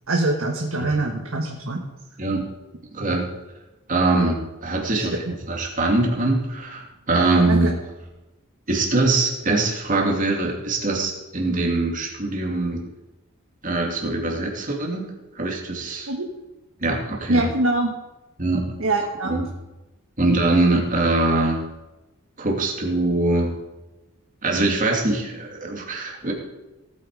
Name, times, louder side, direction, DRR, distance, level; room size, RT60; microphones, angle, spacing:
voice 1, 0.1-1.9 7.5-7.7 16.1-16.3 17.3-17.9 18.8-19.3, right 2 dB, 75° right, 1 dB, 1.5 m, -23 dB
voice 2, 2.9-3.3 3.9-7.7 8.7-12.9 13.6-15.0 15.3-16.1 16.8-17.5 18.4-18.8 19.2-19.5 20.2-21.6 22.4-23.6 24.4-26.3, right 2 dB, 40° right, 0 dB, 2.6 m, -23 dB
18.0 x 8.8 x 4.9 m, 1.0 s
head